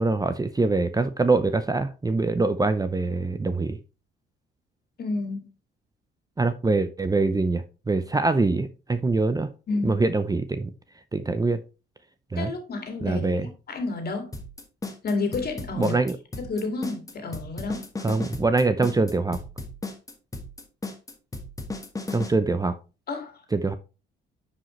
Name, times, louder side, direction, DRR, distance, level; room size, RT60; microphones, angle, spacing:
voice 1, 0.0-3.8 6.4-9.5 9.8-10.7 11.1-11.6 12.3-12.5 13.0-13.5 15.8-16.2 18.0-19.4 22.1-22.7 23.5-23.8, right 3 dB, 20° right, 0.6 m, -24 dB
voice 2, 5.0-5.5 9.7-10.0 12.4-13.3 13.7-14.3 15.0-16.0 16.4-17.9 23.1-23.4, left 3 dB, 50° left, 2.4 m, -30 dB
sound 1, 14.3-22.3, left 2 dB, 15° left, 1.4 m, -35 dB
9.7 x 5.1 x 3.2 m
cardioid pair, 90°, 20 cm